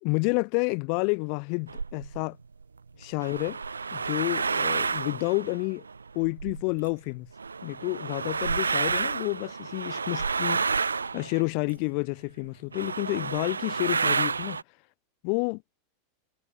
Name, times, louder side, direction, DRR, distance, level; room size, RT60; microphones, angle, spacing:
voice 1, 0.0-2.4 3.0-3.6 3.9-5.8 6.1-7.3 7.6-10.6 11.1-14.6 15.2-15.6, left 40 dB or more, 50° left, 0.9 m, -29 dB
sound 1, 1.7-2.2 3.0-6.9 7.4-12.0 12.4-12.5 12.7-14.6, right 5 dB, 80° right, 0.9 m, -30 dB
figure-of-eight pair, 90°, 0 cm